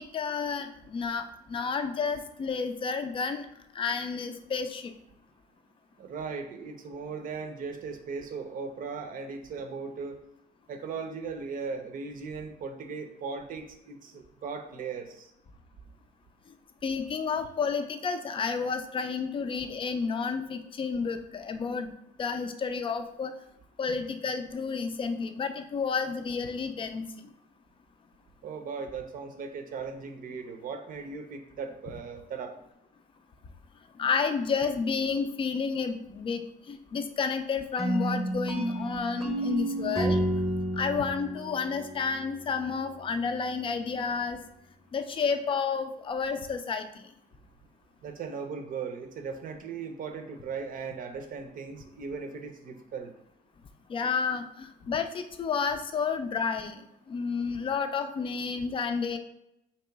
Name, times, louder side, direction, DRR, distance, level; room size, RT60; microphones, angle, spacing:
voice 1, 0.0-3.5 3.7-4.9 16.8-21.9 22.2-23.3 23.8-27.1 34.0-40.2 40.7-44.4 44.9-46.8 53.9-59.2, left 5 dB, 30° left, 8 dB, 0.4 m, -31 dB
voice 2, 6.0-10.2 10.7-15.3 23.9-24.0 28.4-32.5 38.8-39.0 48.0-53.1, right 5 dB, 55° right, 5 dB, 0.6 m, -38 dB
sound 1, 37.8-42.7, right 1 dB, ahead, 0.8 m, -31 dB
3.0 x 2.9 x 4.5 m, 0.80 s
cardioid pair, 110°, 17 cm